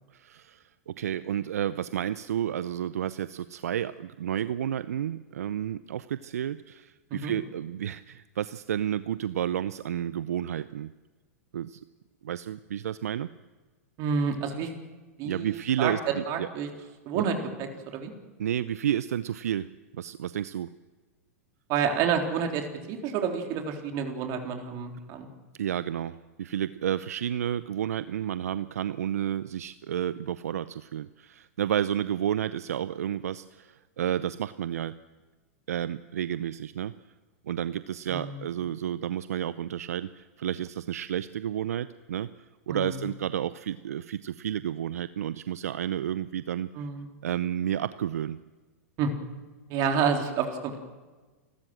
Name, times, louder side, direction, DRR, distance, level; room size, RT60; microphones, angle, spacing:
voice 1, 0.1-10.9 11.5-11.8 12.2-13.3 15.2-16.5 17.1-17.3 18.4-19.7 20.0-20.7 25.6-34.9 35.7-36.9 37.4-46.9 47.2-48.4, right 10 dB, 80° right, 15 dB, 0.6 m, -31 dB
voice 2, 14.0-14.7 15.2-15.9 16.3-16.7 17.1-18.1 21.7-25.3 38.1-38.4 42.7-43.0 46.8-47.1 49.0-49.1 49.7-50.8, right 6 dB, 45° right, 4 dB, 3.6 m, -29 dB
29.5 x 13.0 x 7.7 m, 1.3 s
hypercardioid pair, 115°, 8 cm